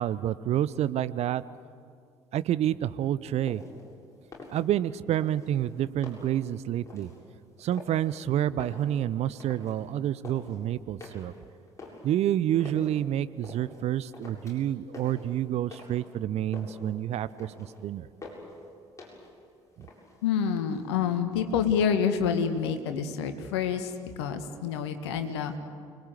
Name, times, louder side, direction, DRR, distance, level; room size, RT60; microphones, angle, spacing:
voice 1, 0.0-1.4 2.3-3.6 4.5-7.1 7.6-11.3 12.0-17.5 17.8-18.1, right 11 dB, 50° right, 16 dB, 0.8 m, -28 dB
sound 1, 3.4-3.8 4.2-4.9 5.2-6.4 6.9-7.2 7.7-8.2 8.5-9.8 10.0-10.6 11.0-12.9 13.4-13.8 14.1-14.7 14.9-16.1 16.4-16.9 17.2-17.8 18.2-18.6 19.0-19.4 19.7-20.4, left 2 dB, 20° left, 7.9 m, -46 dB
voice 2, 20.2-23.9 24.2-25.5, left 7 dB, 70° left, 8 dB, 1.8 m, -27 dB
29.5 x 20.5 x 8.4 m, 2.3 s
figure-of-eight pair, 50°, 14 cm